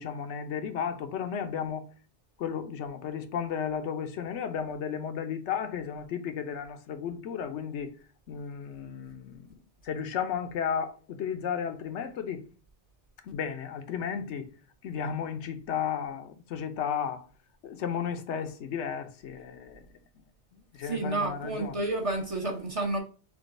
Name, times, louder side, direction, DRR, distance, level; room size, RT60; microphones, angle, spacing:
voice 1, 0.0-1.9 2.4-7.9 8.3-9.5 9.8-12.4 13.2-14.5 14.8-17.3 17.6-19.9 20.5-21.8, left 7 dB, 85° left, 1.0 m, -34 dB
voice 2, 20.8-23.0, right 2 dB, 35° right, 0.6 m, -30 dB
3.8 x 3.7 x 2.5 m
omnidirectional pair, 1.1 m